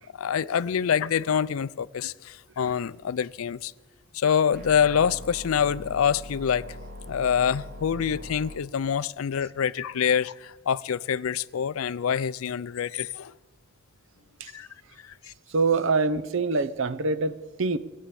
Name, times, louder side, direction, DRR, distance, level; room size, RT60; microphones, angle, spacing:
voice 1, 0.1-3.7 4.1-6.8 7.1-13.3 14.5-14.7 15.0-15.1, left 7 dB, 85° left, 0.4 m, -26 dB
sound 1, 4.5-8.5, left 1 dB, 50° right, 2.1 m, -41 dB
voice 2, 15.5-17.8, right 3 dB, 70° right, 0.8 m, -25 dB
22.5 x 8.4 x 7.0 m
head